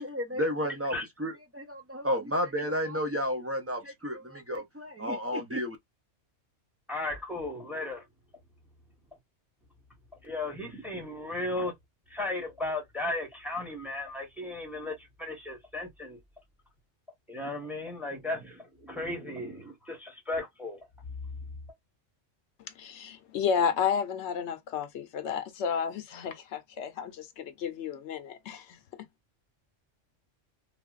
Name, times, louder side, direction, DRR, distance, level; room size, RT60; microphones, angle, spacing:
voice 1, 0.0-0.9 1.2-5.8, equal, 20° right, 0.3 m, -31 dB
voice 2, 6.9-8.0 10.2-11.7 12.1-16.2 17.3-20.9, left 2 dB, ahead, 0.9 m, -35 dB
voice 3, 22.8-29.0, left 7 dB, 70° left, 0.9 m, -32 dB
3.3 x 2.3 x 2.4 m
omnidirectional pair, 1.3 m